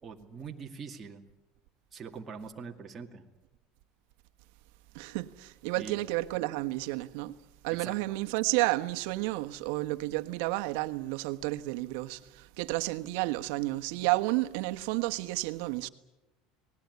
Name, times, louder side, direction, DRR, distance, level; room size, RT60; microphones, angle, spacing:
voice 1, 0.0-1.2 1.9-3.2 5.7-6.1 7.8-8.1, right 5 dB, 20° right, 2.3 m, -43 dB
voice 2, 4.9-7.3 7.6-15.9, right 20 dB, 70° right, 1.3 m, -31 dB
29.5 x 19.5 x 9.6 m
cardioid pair, 155°, 0 cm